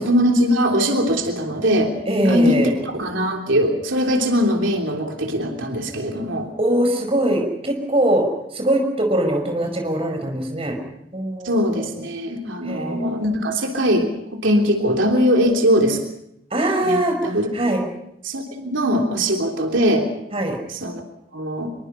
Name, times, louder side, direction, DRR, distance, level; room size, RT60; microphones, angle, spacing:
voice 1, 0.0-1.9 2.2-6.5 11.4-16.0 16.8-17.5 18.2-20.1 20.7-21.0 21.3-21.7, equal, 85° right, 2 dB, 3.2 m, -21 dB
voice 2, 2.1-2.7 6.6-8.3 8.5-10.8 11.1-11.9 12.6-13.1 16.5-17.8 20.3-20.6, right 1 dB, 30° right, 3 dB, 5.1 m, -22 dB
24.5 x 23.0 x 5.7 m, 0.80 s
head